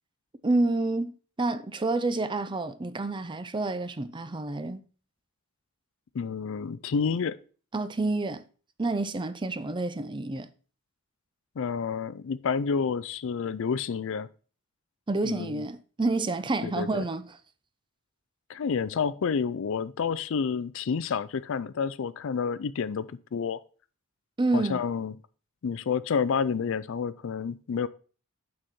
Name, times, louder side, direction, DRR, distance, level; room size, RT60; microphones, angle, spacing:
voice 1, 0.4-4.8 7.7-8.4 8.8-10.5 15.1-17.2 24.4-24.8, right 2 dB, 25° right, 0.5 m, -28 dB
voice 2, 6.1-7.4 11.6-14.3 15.2-15.6 16.6-17.0 18.5-23.6 24.5-25.1 25.6-27.9, left 6 dB, 65° left, 0.4 m, -29 dB
6.3 x 6.1 x 4.2 m
head